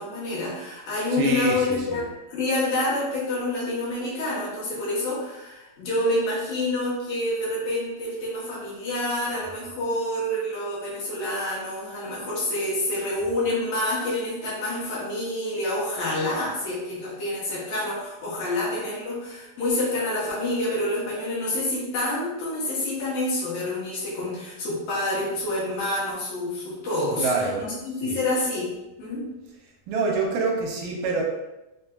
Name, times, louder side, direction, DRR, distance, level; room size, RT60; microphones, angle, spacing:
voice 1, 0.0-2.0 2.3-27.3 27.6-28.7 29.0-29.3, left 1 dB, 70° left, -7 dB, 2.5 m, -27 dB
voice 2, 1.1-2.0 27.2-27.7 28.0-28.2 29.9-31.2, right 3 dB, 80° right, -1 dB, 2.0 m, -26 dB
5.4 x 2.6 x 2.3 m, 0.98 s
omnidirectional pair, 3.3 m